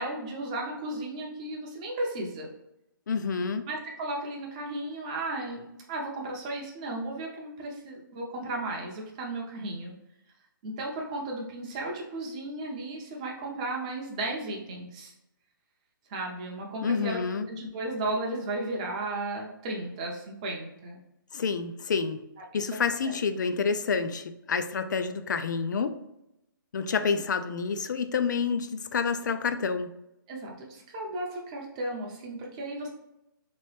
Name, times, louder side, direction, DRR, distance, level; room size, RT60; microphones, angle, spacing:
voice 1, 0.0-2.5 3.7-10.0 10.6-15.1 16.1-17.2 17.5-21.0 22.5-23.2 30.3-32.9, right 2 dB, 20° right, -1 dB, 0.5 m, -35 dB
voice 2, 3.1-3.7 16.8-17.5 21.3-22.2 22.5-25.9 26.7-29.9, left 5 dB, 55° left, 9 dB, 0.4 m, -28 dB
3.1 x 3.0 x 3.1 m, 0.87 s
hypercardioid pair, 165°, 11 cm